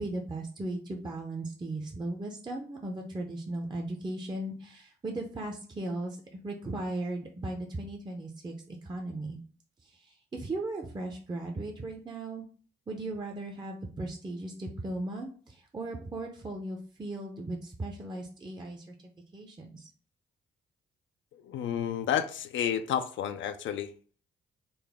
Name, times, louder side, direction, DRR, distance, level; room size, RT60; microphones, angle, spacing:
voice 1, 0.0-9.4 9.8-12.4 12.9-18.9 19.3-19.9, right 2 dB, 20° right, 0.6 m, -37 dB
voice 2, 21.4-23.9, left 9 dB, 70° left, 0.4 m, -30 dB
4.0 x 2.1 x 3.5 m
cardioid pair, 70°, 21 cm